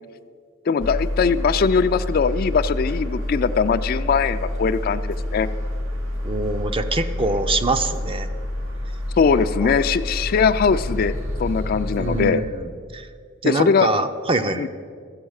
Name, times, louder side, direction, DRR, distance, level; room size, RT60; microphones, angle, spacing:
voice 1, 0.7-5.5 9.2-11.1 11.4-12.4 13.4-13.9 14.6-14.7, left 5 dB, 50° left, 11 dB, 0.4 m, -20 dB
sound 1, 0.8-12.3, left 1 dB, 85° right, 1.3 m, -28 dB
voice 2, 6.2-8.3 9.3-9.7 12.0-13.1 13.4-14.7, right 2 dB, 30° right, 9 dB, 0.5 m, -24 dB
13.5 x 7.7 x 6.4 m, 2.1 s
head